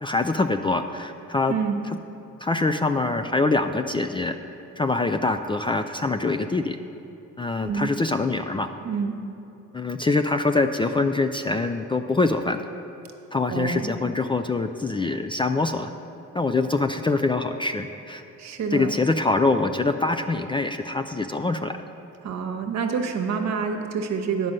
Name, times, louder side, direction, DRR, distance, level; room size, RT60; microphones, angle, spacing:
voice 1, 0.0-1.6 2.4-4.4 4.8-6.8 7.4-8.7 9.7-12.7 13.3-15.9 16.3-18.2 18.7-21.7, left 3 dB, 15° left, 7 dB, 0.3 m, -24 dB
voice 2, 1.5-1.8 7.6-7.9 8.8-9.2 13.5-13.9 18.4-18.9 22.2-24.5, right 5 dB, 60° right, 4 dB, 1.1 m, -27 dB
9.5 x 5.4 x 7.5 m, 2.9 s
cardioid pair, 90°, 30 cm